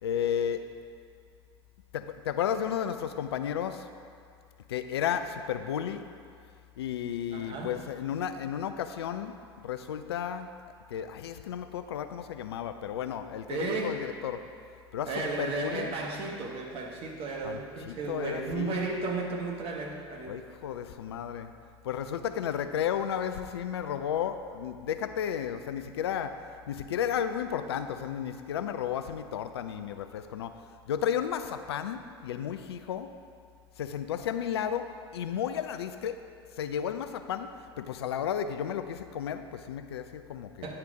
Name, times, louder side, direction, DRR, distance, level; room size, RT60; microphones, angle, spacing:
voice 1, 0.0-0.7 1.9-3.9 4.7-6.1 6.8-10.5 10.9-14.4 14.9-15.9 17.4-18.8 20.3-21.5 21.8-30.6 30.9-33.1 33.8-36.2 36.6-40.7, left 9 dB, 75° left, 10 dB, 0.4 m, -33 dB
voice 2, 7.3-7.7 13.5-14.0 15.0-20.4 40.6-40.8, right 3 dB, 45° right, 1 dB, 1.3 m, -34 dB
9.7 x 4.4 x 5.0 m, 2.3 s
figure-of-eight pair, 75°, 14 cm